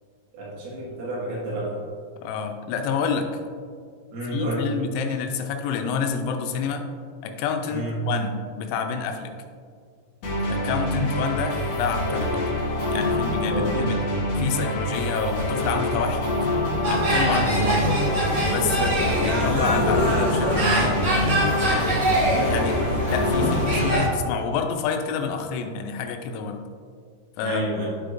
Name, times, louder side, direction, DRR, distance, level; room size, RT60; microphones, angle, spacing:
voice 1, 0.3-1.7 4.1-4.6 7.7-8.0 13.5-13.9 17.4-17.8 27.4-27.9, right 1 dB, 80° right, -6 dB, 4.5 m, -29 dB
voice 2, 2.2-3.3 4.3-6.9 7.2-9.4 10.5-12.5 12.9-14.0 14.4-16.5 16.9-18.1 18.4-22.8 23.1-26.6 27.4-27.7, left 6 dB, 85° left, 5 dB, 3.3 m, -29 dB
sound 1, 10.2-23.9, left 1 dB, 55° left, 2.2 m, -26 dB
sound 2, 16.8-24.0, right 1 dB, 60° right, 1.5 m, -24 dB
12.5 x 4.9 x 2.6 m, 2.1 s
omnidirectional pair, 6.0 m